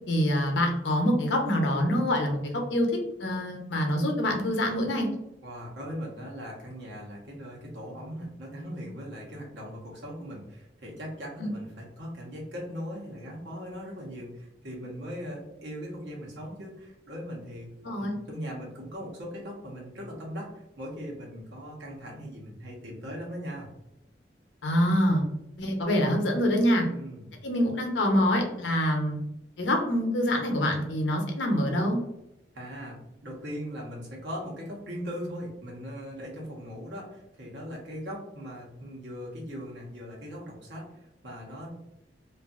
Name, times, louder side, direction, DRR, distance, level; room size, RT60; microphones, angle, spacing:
voice 1, 0.1-2.9 3.2-5.1 11.4-11.5 17.8-18.2 24.6-25.2 25.6-26.9 27.4-29.2 29.6-32.0, equal, 90° left, 2 dB, 0.7 m, -25 dB
voice 2, 5.4-23.7 26.8-27.3 32.5-33.0 33.2-40.9 41.2-41.7, equal, 80° right, -2 dB, 1.0 m, -39 dB
2.6 x 2.5 x 2.4 m, 0.84 s
head